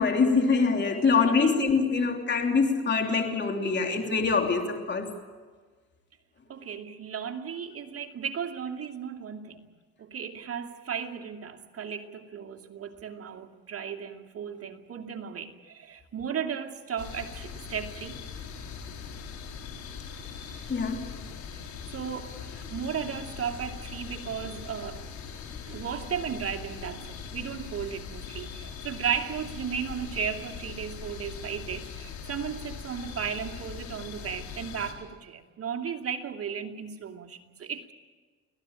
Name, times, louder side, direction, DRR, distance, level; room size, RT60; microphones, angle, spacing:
voice 1, 0.0-5.1 20.7-21.0, left 4 dB, 40° left, 3.2 m, -24 dB
voice 2, 1.0-1.5 6.5-9.7 10.0-18.2 21.9-25.1 25.7-37.9, right 7 dB, 50° right, 2.4 m, -35 dB
sound 1, 17.0-34.9, left 6 dB, 80° left, 4.2 m, -41 dB
25.0 x 17.0 x 8.9 m
cardioid pair, 90°, 29 cm